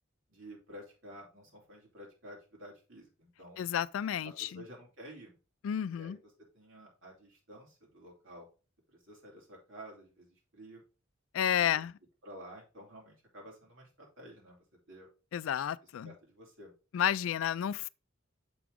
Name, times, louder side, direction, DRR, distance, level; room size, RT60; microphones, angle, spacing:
voice 1, 0.3-3.6 4.2-5.4 5.9-6.2 6.5-8.5 8.9-10.8 11.5-11.7 12.2-14.6 14.9-15.1 16.0-16.7, equal, 75° right, 3.0 m, -51 dB
voice 2, 3.6-4.6 5.6-6.2 11.3-11.9 15.3-16.1 16.9-17.9, left 9 dB, 85° left, 0.3 m, -31 dB
6.9 x 4.8 x 3.6 m
head